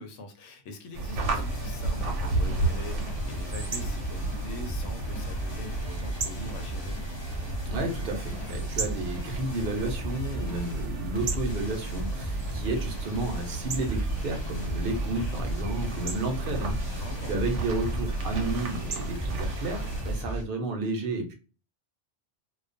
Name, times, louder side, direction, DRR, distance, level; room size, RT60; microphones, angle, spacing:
voice 1, 0.0-7.0 16.9-17.5, left 2 dB, 90° left, 7 dB, 0.9 m, -43 dB
sound 1, 0.9-20.2, right 2 dB, 85° right, 1.0 m, -32 dB
sound 2, 1.2-20.4, right 1 dB, 50° left, 0.3 m, -37 dB
voice 2, 7.6-21.3, right 2 dB, 55° right, 3 dB, 0.8 m, -32 dB
2.3 x 2.2 x 2.5 m, 0.34 s
omnidirectional pair, 1.2 m